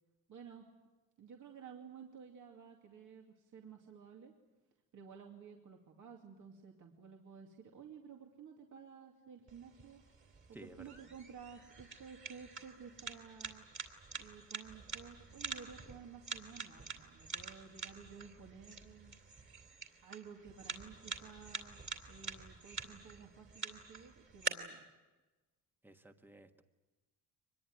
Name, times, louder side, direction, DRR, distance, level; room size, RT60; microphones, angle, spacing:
voice 1, 0.3-0.7 1.2-4.3 4.9-13.7 14.2-19.1 20.0-24.8, right 6 dB, 55° right, 1 dB, 2.6 m, -54 dB
sound 1, 9.5-24.5, right 4 dB, 35° right, 3.3 m, -46 dB
voice 2, 10.5-10.8 25.8-26.6, right 1 dB, 5° right, 6 dB, 1.5 m, -55 dB
24.0 x 21.0 x 9.5 m, 1.2 s
cardioid pair, 115°, 36 cm